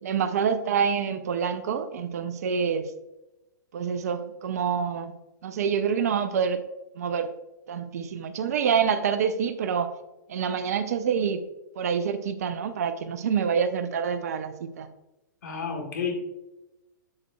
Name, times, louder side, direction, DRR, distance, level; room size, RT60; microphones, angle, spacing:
voice 1, 0.0-2.9 3.7-5.1 5.4-6.6 7.0-7.3 7.7-9.9 10.3-11.4 11.8-14.9, right 7 dB, 50° right, 11 dB, 0.6 m, -27 dB
voice 2, 15.4-16.2, left 6 dB, 60° left, 3 dB, 1.4 m, -30 dB
7.0 x 6.6 x 2.2 m, 0.97 s
figure-of-eight pair, 105°, 11 cm